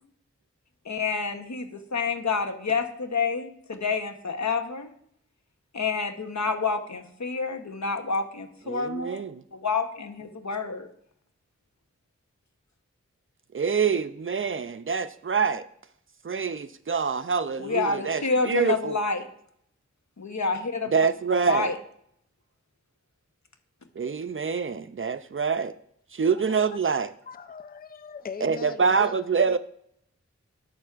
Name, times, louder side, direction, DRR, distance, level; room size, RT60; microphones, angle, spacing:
voice 1, 0.9-4.9 5.7-9.2 9.5-10.9 17.6-19.2 20.2-20.9 21.4-21.7, left 4 dB, 70° left, 0.9 m, -28 dB
voice 2, 8.7-9.4 13.5-15.6 16.2-19.0 20.9-21.7 24.0-25.7 26.1-27.1 28.4-29.6, right 5 dB, 45° right, 0.4 m, -26 dB
voice 3, 26.3-26.7 27.3-29.2, left 5 dB, 30° left, 0.4 m, -40 dB
11.0 x 6.9 x 2.4 m
wide cardioid pair, 50°, 29 cm